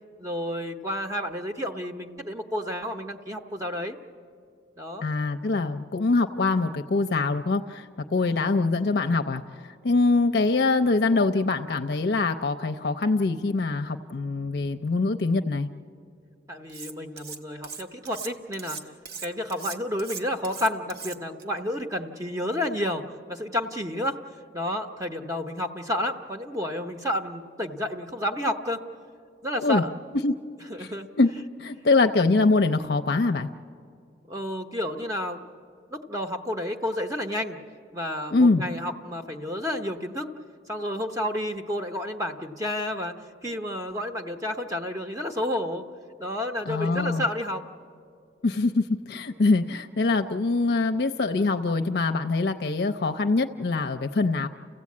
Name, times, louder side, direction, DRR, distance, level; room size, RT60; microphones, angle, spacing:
voice 1, 0.2-4.0 4.8-5.1 8.2-8.6 16.5-18.8 19.2-24.2 24.5-28.8 29.4-29.9 30.7-31.1 34.3-35.4 35.9-37.6 37.9-40.3 40.7-43.1 43.4-45.9 46.2-47.6, left 1 dB, 20° right, 5 dB, 0.8 m, -30 dB
voice 2, 5.0-9.4 9.8-15.7 29.6-29.8 30.1-30.4 30.8-30.9 31.2-31.3 31.6-33.5 38.3-38.6 46.7-47.2 48.4-54.5, left 3 dB, 60° left, 6 dB, 0.5 m, -24 dB
Cutlery silverware, 16.7-17.4 17.6-21.4, right 5 dB, 55° right, 1.0 m, -39 dB
29.5 x 15.5 x 8.5 m, 2.3 s
head